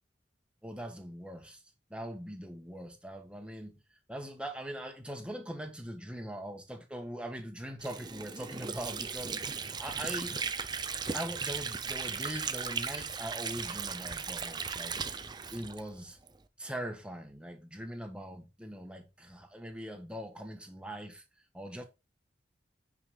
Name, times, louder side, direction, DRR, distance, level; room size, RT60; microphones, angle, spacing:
voice 1, 0.6-1.6 1.9-3.8 4.1-10.3 11.1-15.0 15.5-16.2 16.6-21.2 21.5-21.8, right 1 dB, 5° right, 1.4 m, -41 dB
Water / Sink (filling or washing), 7.8-16.4, right 5 dB, 25° right, 0.6 m, -37 dB
9.3 x 5.0 x 3.8 m
head